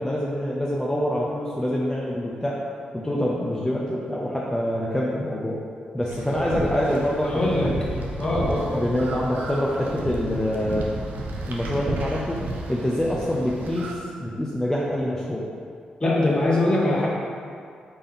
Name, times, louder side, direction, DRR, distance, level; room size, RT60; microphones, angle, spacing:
voice 1, 0.0-2.6 2.9-5.6 5.9-7.9 8.3-10.9 11.5-12.4 12.7-15.4, equal, 10° left, -5 dB, 0.6 m, -26 dB
sound 1, 6.0-13.9, right 2 dB, 75° right, 0.6 m, -32 dB
voice 2, 7.2-7.7 8.2-8.8 10.3-10.4 16.0-17.1, left 2 dB, 30° left, -4 dB, 1.2 m, -22 dB
4.2 x 3.6 x 3.5 m, 2.3 s
supercardioid pair, 55°, 3 cm